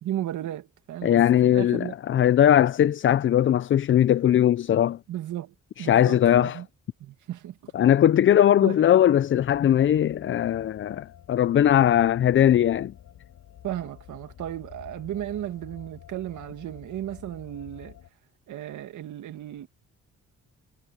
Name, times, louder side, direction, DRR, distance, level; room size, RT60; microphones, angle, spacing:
voice 1, 0.0-1.9 5.1-6.7 7.0-7.7 8.6-8.8 13.6-18.0 18.5-19.7, right 12 dB, 75° right, 2.2 m, -35 dB
voice 2, 1.0-5.0 5.8-6.6 7.7-12.9, left 10 dB, 40° left, 0.5 m, -20 dB
sound 1, 9.4-18.1, left 11 dB, 70° left, 7.4 m, -49 dB
cardioid pair, 90°, 30 cm